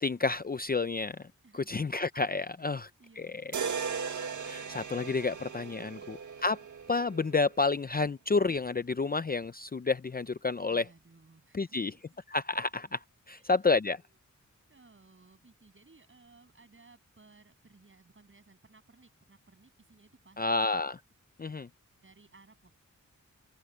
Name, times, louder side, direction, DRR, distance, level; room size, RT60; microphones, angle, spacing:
voice 1, 0.0-1.3 1.7-2.9 4.4-6.6 6.9-10.8 11.5-11.9 12.3-13.0 13.5-14.0 20.4-21.0 21.4-21.7, left 4 dB, 30° left, 0.5 m, -29 dB
voice 2, 2.6-3.8 10.7-11.8 13.3-14.2 14.7-20.7 22.0-22.8, right 3 dB, 40° right, 8.0 m, -60 dB
sound 1, 3.5-7.6, right 6 dB, 70° right, 1.6 m, -38 dB
open air
wide cardioid pair, 120°, 31 cm